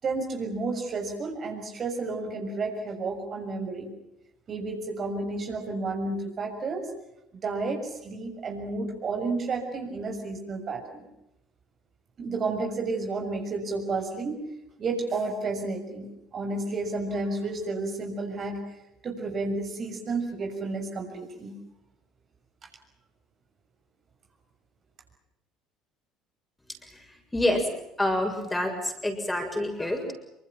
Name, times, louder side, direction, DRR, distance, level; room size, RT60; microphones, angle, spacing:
voice 1, 0.0-3.9 4.5-6.9 7.4-11.0 12.2-14.4 14.8-18.6 19.0-21.6, right 3 dB, 35° right, 3 dB, 6.6 m, -31 dB
voice 2, 26.9-27.7 28.0-30.1, left 1 dB, 10° left, 4 dB, 7.0 m, -27 dB
28.0 x 26.0 x 6.0 m, 0.86 s
figure-of-eight pair, 60°, 0 cm